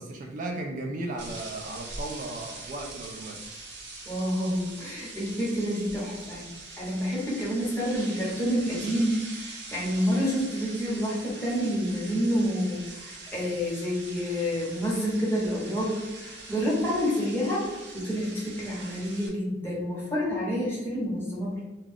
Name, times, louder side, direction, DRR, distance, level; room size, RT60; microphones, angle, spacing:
voice 1, 0.0-3.4, right 2 dB, 45° right, 1 dB, 0.3 m, -35 dB
sound 1, 1.2-19.3, right 3 dB, 65° right, 0.7 m, -43 dB
voice 2, 4.1-6.4 6.8-21.6, equal, 10° left, -6 dB, 0.9 m, -28 dB
2.4 x 2.3 x 3.3 m, 1.1 s
head